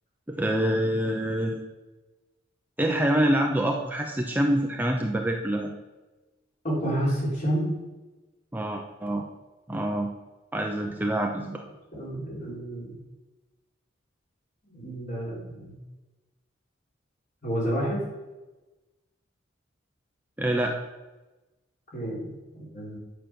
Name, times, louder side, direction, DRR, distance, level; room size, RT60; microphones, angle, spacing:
voice 1, 0.3-1.6 2.8-5.7 8.5-9.2 9.7-10.1 10.5-11.6 20.4-20.8, right 1 dB, 10° right, 2 dB, 0.7 m, -26 dB
voice 2, 6.6-7.9 11.9-12.9 14.7-15.8 17.4-18.0 21.9-23.0, right 1 dB, 40° left, -5 dB, 4.0 m, -30 dB
9.2 x 6.5 x 6.0 m, 1.1 s
head